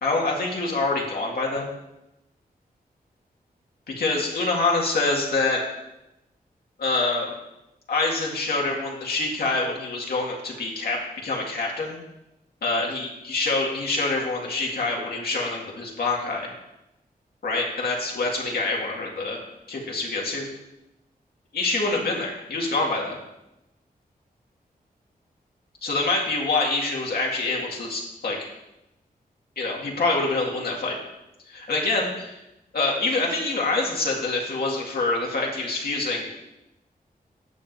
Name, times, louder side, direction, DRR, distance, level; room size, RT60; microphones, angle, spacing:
voice 1, 0.0-1.7 4.0-5.6 6.8-7.3 7.9-12.0 12.6-16.5 17.4-19.4 19.7-20.5 21.5-23.2 25.8-28.5 29.6-31.0 31.5-32.4 32.7-36.3, left 3 dB, 85° left, -2 dB, 2.0 m, -26 dB
12.0 x 7.6 x 2.7 m, 0.90 s
wide cardioid pair, 115°, 16 cm